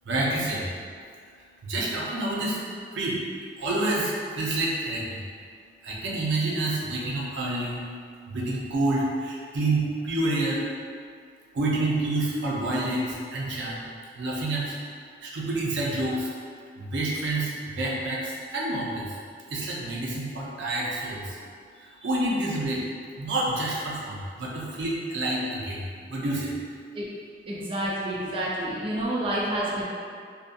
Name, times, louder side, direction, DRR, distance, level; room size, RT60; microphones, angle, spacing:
voice 1, 0.1-0.7 1.6-2.6 2.9-3.2 3.6-5.2 5.8-7.8 8.3-10.6 11.5-13.8 14.2-14.7 15.2-16.3 16.8-19.1 19.5-21.4 22.0-22.8 23.2-26.5, right 2 dB, 85° right, -4 dB, 0.5 m, -28 dB
voice 2, 27.5-29.9, right 1 dB, 30° right, -6 dB, 0.3 m, -29 dB
2.5 x 2.3 x 2.5 m, 2.2 s
head